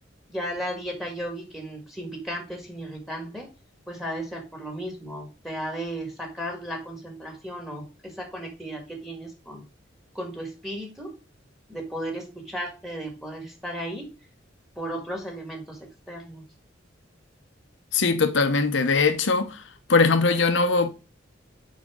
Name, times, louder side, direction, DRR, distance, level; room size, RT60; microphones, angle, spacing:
voice 1, 0.3-3.5 3.9-9.7 10.2-11.1 11.7-14.1 14.8-16.4, equal, ahead, 1.7 m, -35 dB
voice 2, 17.9-19.6 19.9-20.9, left 4 dB, 65° left, 0.9 m, -21 dB
6.4 x 5.2 x 3.6 m
head